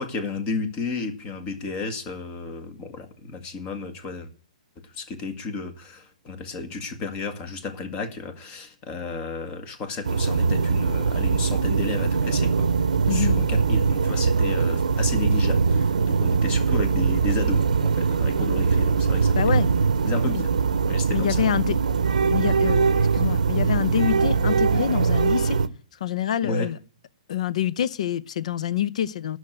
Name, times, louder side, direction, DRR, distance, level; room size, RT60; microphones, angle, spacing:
voice 1, 0.0-4.3 4.8-12.7 13.1-19.6 20.0-20.5 20.8-21.4 26.4-26.7, left 3 dB, 30° left, 1.8 m, -32 dB
sound 1, 10.0-25.7, right 5 dB, 85° right, 0.7 m, -22 dB
voice 2, 13.1-13.4 19.3-19.7 20.4-20.5 21.1-21.8 22.3-25.6 26.0-26.8 27.3-29.4, left 10 dB, 65° left, 0.6 m, -26 dB
11.5 x 6.4 x 7.9 m
hypercardioid pair, 135°, 4 cm